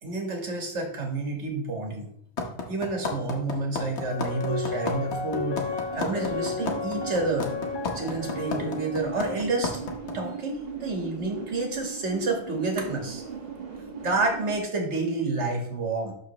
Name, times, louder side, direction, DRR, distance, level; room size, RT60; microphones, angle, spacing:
voice 1, 0.0-2.1 2.7-7.5 7.9-9.8 10.1-13.2 14.0-16.1, right 3 dB, 90° right, 2 dB, 1.7 m, -29 dB
sound 1, 2.4-10.1, left 4 dB, 80° left, 1.4 m, -31 dB
sound 2, 4.0-9.1, left 6 dB, 45° left, 0.3 m, -33 dB
sound 3, 5.1-14.6, right 6 dB, 60° right, 1.4 m, -39 dB
11.5 x 3.9 x 3.0 m, 0.67 s
omnidirectional pair, 1.1 m